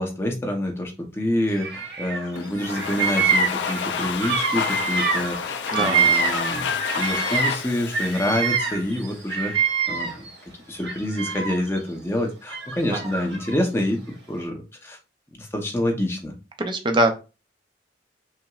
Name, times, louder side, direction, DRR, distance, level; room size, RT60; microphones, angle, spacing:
voice 1, 0.0-6.7 6.9-9.5 9.9-10.1 10.7-14.0 14.3-15.0 15.4-16.3, left 1 dB, 15° left, 1 dB, 0.7 m, -27 dB
Bird vocalization bird call bird song, 1.5-2.3 2.6-7.6 7.9-10.3 10.8-11.8 12.5-13.6, right 5 dB, 80° right, 1.4 m, -25 dB
Domestic sounds home sounds, 2.4-9.2, left 7 dB, 75° left, 0.4 m, -30 dB
voice 2, 5.7-6.1 12.9-13.0 16.6-17.2, right 1 dB, 25° right, 5 dB, 0.5 m, -22 dB
5.7 x 2.1 x 2.3 m, 0.30 s
head